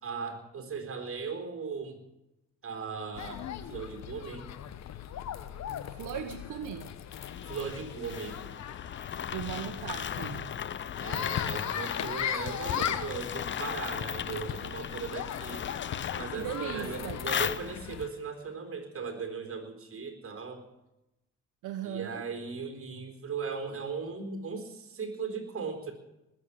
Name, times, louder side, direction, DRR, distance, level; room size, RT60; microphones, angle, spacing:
voice 1, 0.0-2.0 2.6-4.5 7.5-8.4 11.0-15.7 16.1-20.6 21.8-25.9, right 5 dB, 45° right, 4 dB, 4.0 m, -38 dB
sound 1, 3.2-18.1, left 10 dB, 65° left, 1.0 m, -38 dB
voice 2, 5.9-6.9 9.3-10.5 16.3-17.2 21.6-22.3, right 10 dB, 85° right, 5 dB, 1.3 m, -38 dB
sound 2, 7.1-18.1, left 8 dB, 40° left, 0.6 m, -37 dB
20.0 x 7.7 x 8.5 m, 0.95 s
cardioid pair, 90°, 30 cm